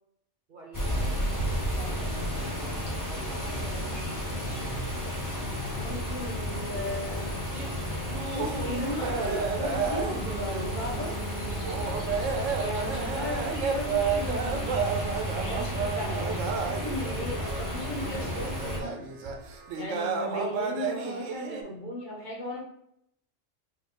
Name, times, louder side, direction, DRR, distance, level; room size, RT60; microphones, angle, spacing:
voice 1, 0.5-2.3 3.0-4.1, right 3 dB, 50° right, -1 dB, 0.7 m, -48 dB
sound 1, 0.7-18.8, equal, 20° left, 0.7 m, -32 dB
voice 2, 5.7-7.4 8.3-11.1 12.6-14.8 15.4-19.1 19.7-22.6, left 1 dB, 40° left, -4 dB, 1.0 m, -36 dB
sound 2, 7.5-21.6, right 5 dB, 80° right, 0.9 m, -32 dB
4.5 x 2.3 x 3.5 m, 0.73 s
omnidirectional pair, 1.3 m